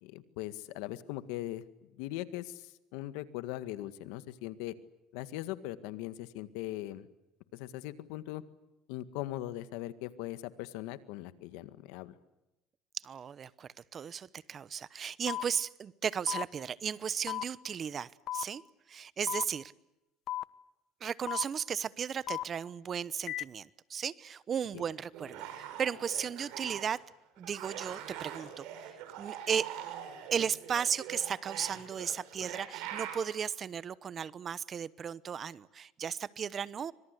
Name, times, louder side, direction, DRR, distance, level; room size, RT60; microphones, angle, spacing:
voice 1, 0.0-4.7 5.1-7.1 7.5-8.4 8.9-12.1 24.7-24.9, left 15 dB, 85° left, 12 dB, 1.8 m, -40 dB
voice 2, 12.9-18.6 18.9-19.7 21.0-27.0 27.4-28.7 29.2-29.7 30.3-36.9, right 7 dB, 35° right, 19 dB, 0.9 m, -35 dB
sound 1, 15.3-15.4 16.3-16.4 17.3-17.4 18.3-18.4 19.3-19.4 20.3-20.4 21.3-21.4 22.3-22.4 23.3-23.4, left 14 dB, 55° left, 1.0 m, -34 dB
sound 2, 25.1-27.0 27.4-33.3, right 10 dB, 75° right, 5.9 m, -43 dB
25.5 x 25.0 x 8.3 m, 0.95 s
cardioid pair, 115°, 0 cm